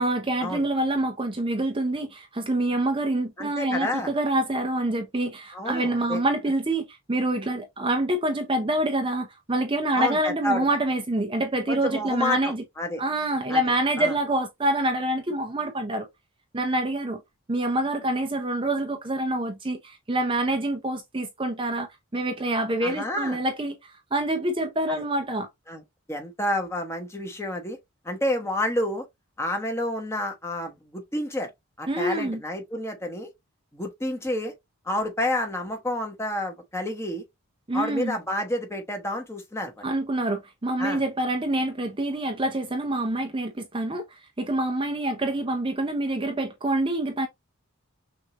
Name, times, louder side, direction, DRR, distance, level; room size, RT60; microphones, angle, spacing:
voice 1, 0.0-12.6 13.0-16.1 16.5-17.2 17.5-25.5 31.9-32.4 37.7-38.2 39.8-47.3, right 1 dB, 25° right, 0.6 m, -26 dB
voice 2, 3.4-4.1 5.5-6.2 9.9-10.6 11.7-13.0 13.5-13.6 14.0-14.1 22.8-23.4 24.9-25.0 25.7-25.8 26.1-27.8 28.0-29.0 29.4-31.5 31.8-33.3 33.7-34.5 34.8-37.2 37.7-39.9 40.8-41.0, left 1 dB, 10° left, 1.1 m, -29 dB
6.3 x 2.6 x 2.8 m
head